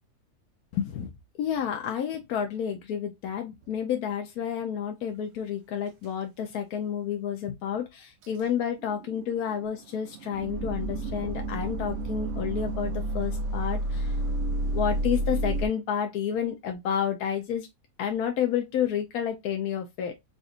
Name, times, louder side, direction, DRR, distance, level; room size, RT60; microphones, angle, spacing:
voice 1, 0.7-1.1 1.4-14.2 14.7-17.7 18.0-20.2, left 8 dB, 75° left, 1.2 m, -30 dB
sound 1, 6.5-6.6 8.2-8.3 8.8-15.7, right 1 dB, 60° right, 0.7 m, -30 dB
4.9 x 2.6 x 2.5 m
omnidirectional pair, 1.6 m